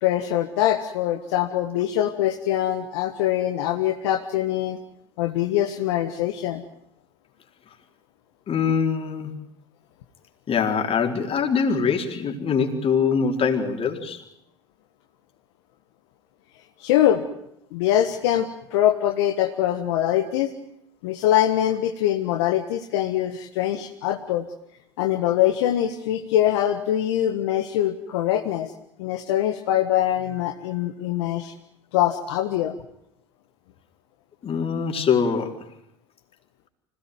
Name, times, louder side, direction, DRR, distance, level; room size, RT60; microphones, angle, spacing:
voice 1, 0.0-4.8 5.2-6.6 16.8-17.2 17.7-20.5 21.0-24.4 25.0-28.7 29.0-31.5 31.9-32.7, left 12 dB, 70° left, 4 dB, 1.5 m, -23 dB
voice 2, 8.5-9.3 10.5-14.2 34.4-35.6, left 6 dB, 40° left, 3 dB, 4.3 m, -23 dB
25.5 x 18.0 x 9.3 m, 0.78 s
hypercardioid pair, 70°, 15 cm